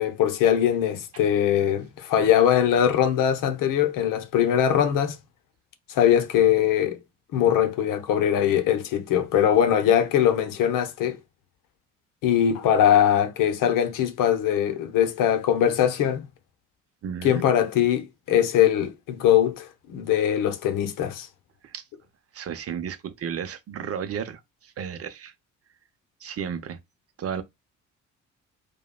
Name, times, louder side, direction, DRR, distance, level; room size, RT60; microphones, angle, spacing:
voice 1, 0.0-5.2 5.9-7.0 7.3-11.2 12.2-16.2 17.2-21.3, left 10 dB, 55° left, 0.8 m, -21 dB
voice 2, 17.0-17.4 21.6-21.8 22.3-25.3 26.2-26.8 27.2-27.4, right 8 dB, 40° right, 0.6 m, -33 dB
4.7 x 2.3 x 2.2 m
figure-of-eight pair, 50°, 39 cm